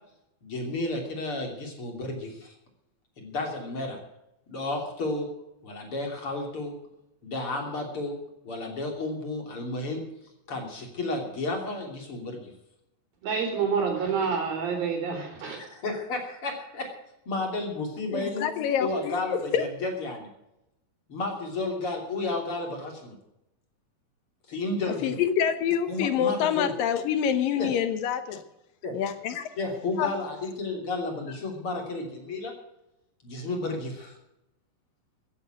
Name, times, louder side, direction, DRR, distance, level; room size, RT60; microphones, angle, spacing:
voice 1, 0.4-2.5 3.2-4.0 4.5-5.3 5.6-6.7 7.2-8.2 8.4-10.0 10.5-12.5 15.5-16.9 17.3-18.5 18.8-20.3 21.1-23.2 24.5-25.2 25.9-26.7 27.6-27.7 28.8-29.0 29.6-32.5 33.2-34.2, left 2 dB, 40° left, 2 dB, 3.6 m, -32 dB
voice 2, 13.2-15.6, right 6 dB, 75° right, 3 dB, 5.4 m, -28 dB
voice 3, 18.1-19.2 19.5-19.6 25.0-28.4 28.9-29.5 30.0-30.1, left 9 dB, 75° left, 10 dB, 2.7 m, -26 dB
14.5 x 9.8 x 7.7 m, 0.86 s
omnidirectional pair, 4.2 m